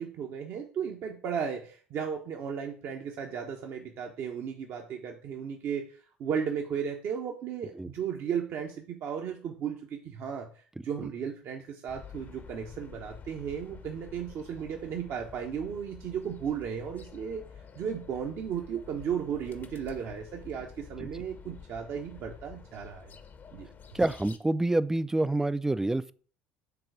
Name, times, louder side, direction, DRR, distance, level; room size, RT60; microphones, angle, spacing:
voice 1, 0.0-17.4 17.7-23.1 23.5-23.7, right 7 dB, 50° right, 0.9 m, -35 dB
sound 1, 11.9-24.4, left 6 dB, 35° left, 0.8 m, -49 dB
voice 2, 23.9-26.1, right 2 dB, 10° right, 0.4 m, -27 dB
6.9 x 3.9 x 5.0 m
figure-of-eight pair, 60°, 6 cm